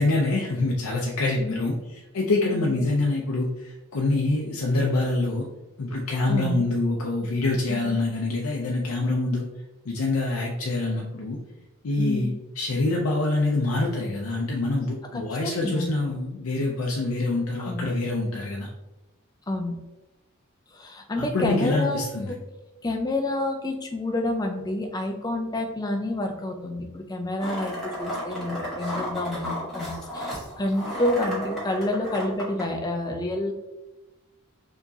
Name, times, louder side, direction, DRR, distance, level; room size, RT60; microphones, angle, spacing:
voice 1, 0.0-5.4 5.8-9.5 9.9-11.4 11.8-12.3 12.6-18.7 21.2-22.3, left 2 dB, 85° left, -2 dB, 0.5 m, -25 dB
voice 2, 6.3-6.7 7.7-7.9 12.0-12.3 15.1-15.9 17.6-17.9 19.5-19.8 20.7-22.0 22.3-22.4 22.8-33.5, left 1 dB, 20° left, 3 dB, 0.4 m, -29 dB
sound 1, 27.4-32.6, left 1 dB, ahead, 1.3 m, -33 dB
4.5 x 2.9 x 2.7 m, 1.0 s
head